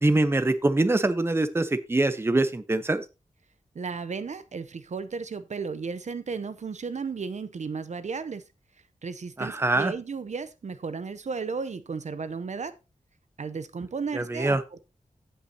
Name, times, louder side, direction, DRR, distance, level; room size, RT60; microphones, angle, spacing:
voice 1, 0.0-3.0 9.4-9.9 14.1-14.6, right 2 dB, 20° right, 11 dB, 0.7 m, -24 dB
voice 2, 3.7-8.4 9.0-12.7 13.4-14.8, right 5 dB, 60° right, 13 dB, 0.7 m, -34 dB
16.0 x 5.6 x 2.8 m, 0.27 s
wide cardioid pair, 120°, 14 cm